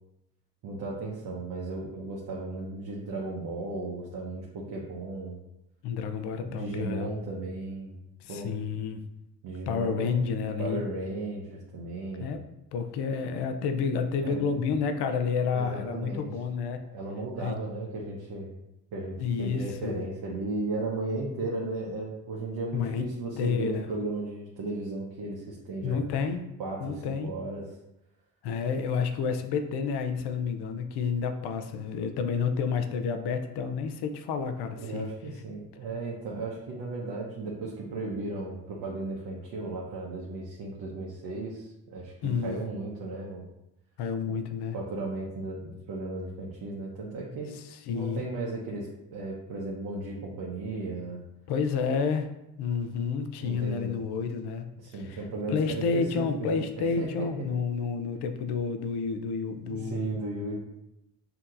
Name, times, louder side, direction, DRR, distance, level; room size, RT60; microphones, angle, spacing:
voice 1, 0.6-5.4 6.4-8.0 8.3-8.5 9.4-10.3 10.6-12.4 14.2-14.5 15.5-16.3 16.9-18.5 18.9-26.0 26.6-27.7 34.8-42.1 42.4-43.4 44.7-47.5 47.9-51.2 53.4-54.0 54.8-57.1 59.7-60.6, right 2 dB, 70° right, -3 dB, 0.9 m, -35 dB
voice 2, 5.8-7.1 8.2-9.0 9.7-10.8 12.2-12.4 12.7-16.8 17.4-17.6 19.2-20.0 22.7-23.0 23.4-23.9 25.8-26.4 26.8-27.4 28.4-35.1 42.2-42.6 44.0-44.8 47.5-48.2 51.5-52.3 52.6-55.2 55.5-60.2, left 5 dB, 85° left, 7 dB, 0.6 m, -30 dB
5.8 x 2.8 x 2.5 m, 0.89 s
cardioid pair, 80°, 39 cm